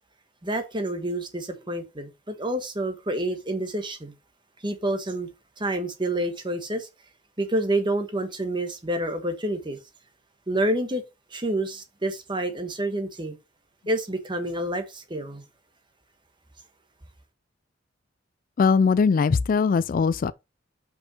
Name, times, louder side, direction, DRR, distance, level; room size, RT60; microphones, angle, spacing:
voice 1, 0.4-4.1 4.6-5.3 5.6-6.9 7.4-9.8 10.5-11.0 11.3-13.4 13.9-15.4, right 1 dB, 25° right, 1.3 m, -28 dB
voice 2, 18.6-20.3, left 5 dB, 45° left, 0.3 m, -20 dB
5.5 x 5.4 x 5.4 m
head